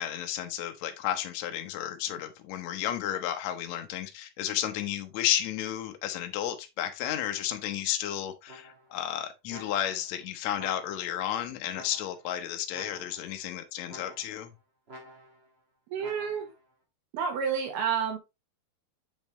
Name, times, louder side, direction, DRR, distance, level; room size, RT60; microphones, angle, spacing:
voice 1, 0.0-14.5, left 11 dB, 85° left, 1.5 m, -32 dB
sound 1, 8.5-9.0 9.5-10.1 10.5-11.2 11.7-12.3 12.7-13.4 13.9-14.5 14.9-15.5 16.0-16.6, equal, 35° right, 0.9 m, -49 dB
voice 2, 15.9-16.5 17.1-18.2, right 7 dB, 85° right, 3.6 m, -29 dB
7.0 x 5.5 x 3.1 m
omnidirectional pair, 4.4 m